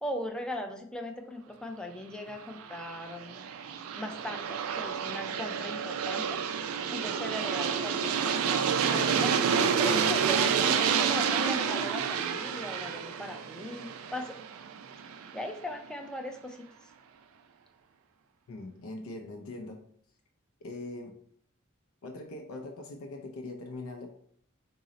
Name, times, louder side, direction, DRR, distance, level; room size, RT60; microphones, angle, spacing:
voice 1, 0.0-3.5 3.9-6.4 6.9-14.4 15.3-16.6, equal, 5° left, 3 dB, 0.3 m, -39 dB
Aircraft, 2.5-15.3, right 7 dB, 80° right, 0.3 m, -29 dB
voice 2, 18.5-19.8 20.6-21.2 22.0-24.1, left 2 dB, 85° left, 3 dB, 0.4 m, -41 dB
3.7 x 2.0 x 3.9 m, 0.65 s
head